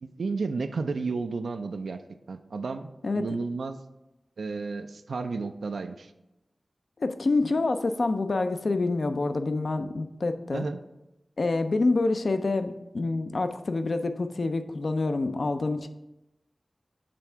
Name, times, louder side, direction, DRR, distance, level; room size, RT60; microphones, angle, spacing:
voice 1, 0.0-2.0 2.3-3.8 4.4-6.1 10.5-10.8, right 4 dB, 90° right, 9 dB, 0.3 m, -32 dB
voice 2, 7.0-10.7 11.4-15.9, left 3 dB, 65° left, 8 dB, 0.4 m, -27 dB
7.6 x 3.4 x 4.4 m, 0.92 s
wide cardioid pair, 55°, 0 cm